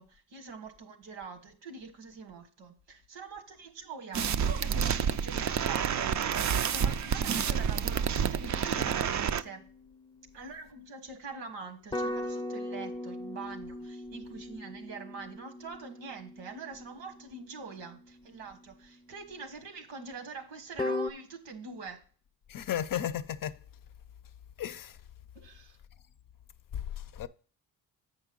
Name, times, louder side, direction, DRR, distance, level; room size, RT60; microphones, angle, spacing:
voice 1, 0.0-9.7 10.3-22.0 25.3-25.8, right 4 dB, 85° right, 1.5 m, -44 dB
sound 1, 4.1-9.4, right 7 dB, 40° right, 0.5 m, -29 dB
sound 2, 8.5-10.4 11.9-19.0 20.8-21.1, left 2 dB, 10° left, 0.7 m, -39 dB
voice 2, 22.5-23.6 24.6-25.0 26.7-27.3, left 10 dB, 50° left, 0.6 m, -34 dB
8.2 x 5.4 x 3.8 m
cardioid pair, 70°, 44 cm